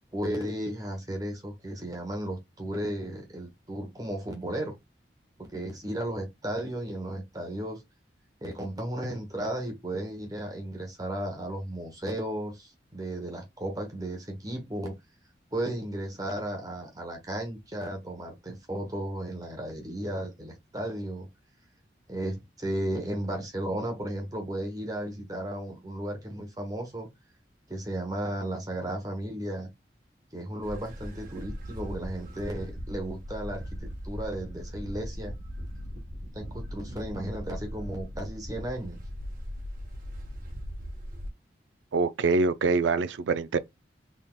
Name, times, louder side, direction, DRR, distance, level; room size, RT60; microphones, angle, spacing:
voice 1, 0.1-4.8 5.4-7.8 8.4-14.9 15.5-21.3 22.1-27.1 27.7-29.7 30.3-35.3 36.3-39.0, right 1 dB, 20° right, 1.0 m, -34 dB
sound 1, 30.6-41.3, equal, 50° right, 1.1 m, -39 dB
voice 2, 41.9-43.6, right 4 dB, 85° right, 0.4 m, -24 dB
4.0 x 3.6 x 2.3 m
head